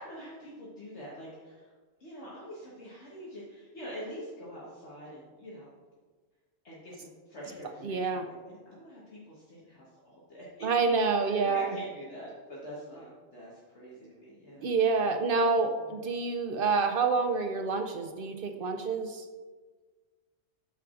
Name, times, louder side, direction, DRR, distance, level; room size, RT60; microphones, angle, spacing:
voice 1, 0.0-1.7 2.0-5.7 6.6-10.7 11.2-14.7 15.7-16.0, equal, 60° left, -6 dB, 1.5 m, -45 dB
voice 2, 7.8-8.3 10.6-11.7 14.6-19.3, right 4 dB, 65° right, 6 dB, 0.5 m, -27 dB
13.0 x 4.5 x 2.4 m, 1.4 s
omnidirectional pair, 1.4 m